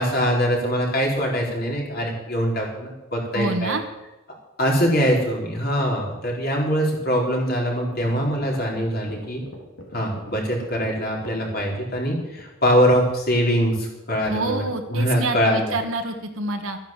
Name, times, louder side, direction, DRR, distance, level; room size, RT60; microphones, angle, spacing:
voice 1, 0.0-3.8 4.6-9.4 9.9-14.6 14.9-15.7, equal, 45° left, -1 dB, 4.3 m, -23 dB
voice 2, 3.3-3.8 14.2-16.8, right 2 dB, 80° right, 4 dB, 1.5 m, -27 dB
sound 1, 7.9-12.6, left 1 dB, 75° left, 3.5 m, -41 dB
13.5 x 10.5 x 7.4 m, 1.0 s
head